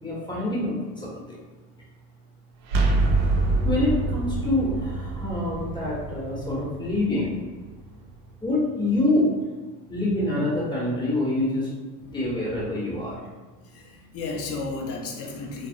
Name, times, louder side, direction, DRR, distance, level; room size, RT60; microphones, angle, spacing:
voice 1, 0.0-1.4 3.6-7.4 8.4-9.4 9.9-11.7 12.1-13.2, left 1 dB, 10° left, -6 dB, 1.2 m, -26 dB
sound 1, 2.7-8.4, right 2 dB, 50° right, 0.6 m, -26 dB
voice 2, 13.5-15.7, left 3 dB, 30° left, 0 dB, 0.6 m, -34 dB
3.4 x 2.0 x 2.6 m, 1.3 s
figure-of-eight pair, 65°, 47 cm